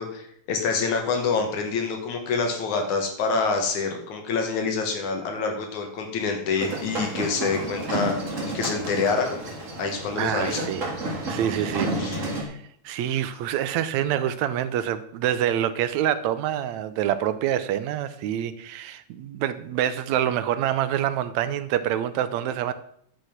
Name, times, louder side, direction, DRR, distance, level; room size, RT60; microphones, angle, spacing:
voice 1, 0.0-8.2 8.5-9.5 9.8-10.7 11.8-12.2, left 4 dB, 80° left, 4 dB, 2.9 m, -26 dB
sound 1, 6.6-12.4, right 2 dB, 30° right, 1.8 m, -31 dB
voice 2, 10.1-10.8 11.3-22.7, right 11 dB, 75° right, 12 dB, 2.0 m, -26 dB
11.5 x 5.3 x 5.8 m, 0.66 s
omnidirectional pair, 3.4 m